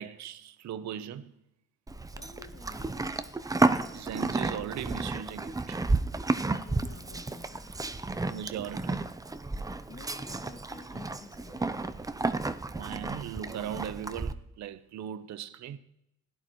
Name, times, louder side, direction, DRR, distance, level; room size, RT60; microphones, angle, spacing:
voice 1, 0.0-1.3 3.9-5.8 8.3-9.1 12.8-15.8, right 9 dB, 65° right, 0.7 m, -38 dB
Livestock farm animals working animals, 1.9-14.3, right 3 dB, 10° right, 0.6 m, -32 dB
voice 2, 2.2-3.5 6.5-7.7 9.9-11.9, left 4 dB, 40° left, 2.3 m, -51 dB
16.5 x 11.5 x 3.1 m
cardioid pair, 90°, 30 cm